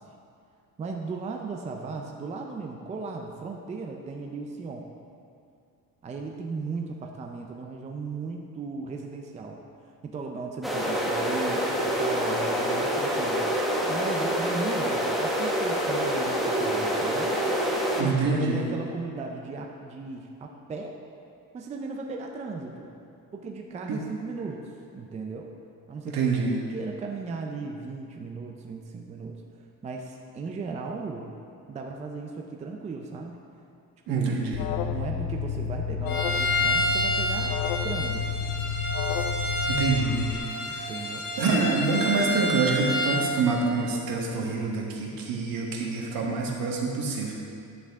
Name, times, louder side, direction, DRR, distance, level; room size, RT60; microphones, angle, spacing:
voice 1, 0.8-4.9 6.0-9.6 10.0-13.4 13.8-17.4 18.0-21.0 21.5-22.9 23.3-24.6 24.9-25.5 25.9-26.2 26.7-29.4 29.8-31.3 31.7-33.4 34.1-34.5 34.9-37.5 37.8-38.3 40.7-41.3, right 4 dB, 20° right, 1 dB, 0.5 m, -36 dB
sound 1, 10.6-18.0, equal, ahead, 0.8 m, -26 dB
voice 2, 18.0-18.7 23.4-23.5 23.9-24.0 26.1-26.6 34.1-34.6 39.7-40.9 41.4-47.4, right 4 dB, 70° right, -1 dB, 1.5 m, -26 dB
Alarm, 34.5-40.4, left 7 dB, 85° left, 0.5 m, -30 dB
Bowed string instrument, 36.1-43.3, left 1 dB, 65° left, 2.3 m, -29 dB
10.0 x 8.0 x 3.6 m, 2.5 s
cardioid pair, 165°, 36 cm